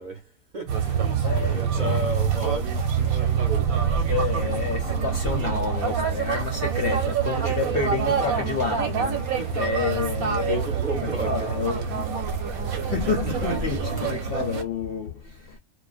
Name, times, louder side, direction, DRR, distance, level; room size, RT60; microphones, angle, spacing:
voice 1, 0.0-3.9 7.4-7.7 9.4-9.6 10.5-11.5, right 2 dB, 40° right, 0.8 m, -34 dB
sound 1, 0.7-14.6, right 8 dB, 85° right, 1.2 m, -26 dB
sound 2, 0.9-14.1, equal, 5° right, 1.0 m, -36 dB
voice 2, 1.2-2.0 4.1-12.2 12.8-15.6, left 6 dB, 60° left, 0.6 m, -30 dB
2.5 x 2.1 x 2.4 m
omnidirectional pair, 1.5 m